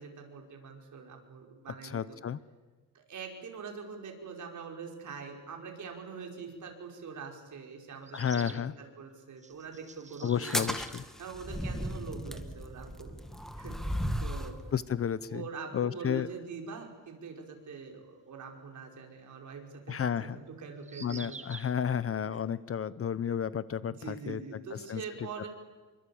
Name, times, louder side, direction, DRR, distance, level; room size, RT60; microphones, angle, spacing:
voice 1, 0.0-2.2 2.9-10.8 11.2-13.2 13.6-14.6 15.3-21.3 24.0-25.5, right 5 dB, 55° right, 2 dB, 5.3 m, -44 dB
voice 2, 1.8-2.4 8.1-8.7 10.2-11.0 14.7-15.5 15.7-16.3 19.9-20.4 21.0-24.4 24.7-25.0, left 8 dB, 40° left, 17 dB, 0.8 m, -32 dB
sound 1, 6.5-6.6 8.0-8.7 9.4-11.1 12.3-12.4 12.6-12.7 15.1-15.2 18.3-18.4 20.8-21.8, right 4 dB, 20° right, 0.9 m, -47 dB
sound 2, 10.4-14.6, equal, ahead, 1.8 m, -35 dB
27.5 x 24.0 x 8.6 m, 1.3 s
cardioid pair, 140°, 36 cm